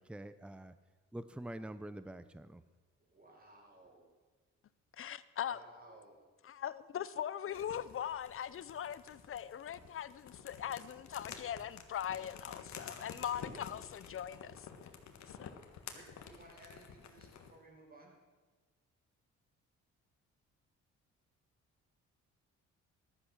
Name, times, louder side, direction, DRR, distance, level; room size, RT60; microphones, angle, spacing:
voice 1, 0.1-0.7 1.1-2.6, right 1 dB, 5° right, 0.7 m, -45 dB
voice 2, 3.1-4.1 5.4-6.2 7.5-7.8 15.9-18.1, right 2 dB, 30° right, 5.3 m, -58 dB
voice 3, 5.0-5.6 6.5-14.5 15.4-15.5, left 9 dB, 45° left, 0.7 m, -40 dB
sound 1, 7.5-17.6, left 7 dB, 65° left, 1.7 m, -51 dB
14.5 x 12.0 x 6.3 m
cardioid pair, 90°, 30 cm